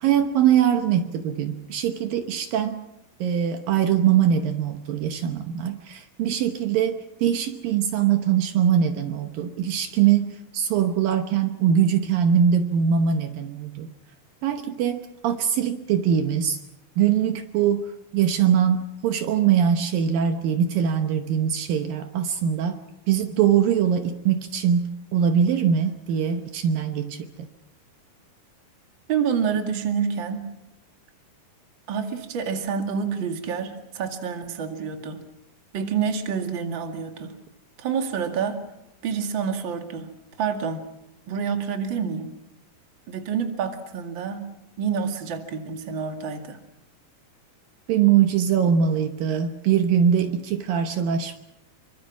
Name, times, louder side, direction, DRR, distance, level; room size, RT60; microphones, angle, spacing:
voice 1, 0.0-2.8 3.2-13.9 14.4-16.6 17.0-22.8 23.1-27.5 47.9-51.4, right 8 dB, 70° right, 7 dB, 2.7 m, -22 dB
voice 2, 29.1-30.5 31.9-35.2 35.7-37.3 37.8-38.6 39.0-40.1 40.4-40.8 41.3-42.3 43.1-44.5 44.8-46.6, right 6 dB, 35° right, 5 dB, 2.4 m, -28 dB
26.5 x 24.5 x 6.0 m, 0.84 s
omnidirectional pair, 4.4 m